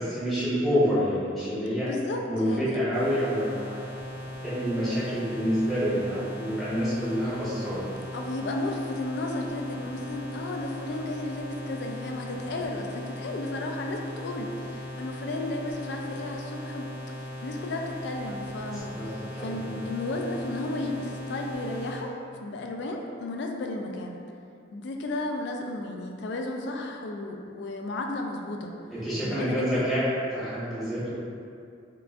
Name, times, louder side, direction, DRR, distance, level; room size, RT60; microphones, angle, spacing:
voice 1, 0.0-1.9 2.3-3.8 4.4-7.8 18.6-19.1 19.3-19.7 28.9-30.0 30.3-31.1, equal, ahead, -13 dB, 1.0 m, -28 dB
voice 2, 1.8-2.8 8.1-16.9 17.2-22.1 22.4-24.2 24.7-28.7 29.2-29.8, left 2 dB, 60° left, 2 dB, 0.3 m, -33 dB
sound 1, 2.9-22.0, left 1 dB, 30° left, 1.1 m, -39 dB
4.6 x 2.4 x 2.4 m, 2.5 s
head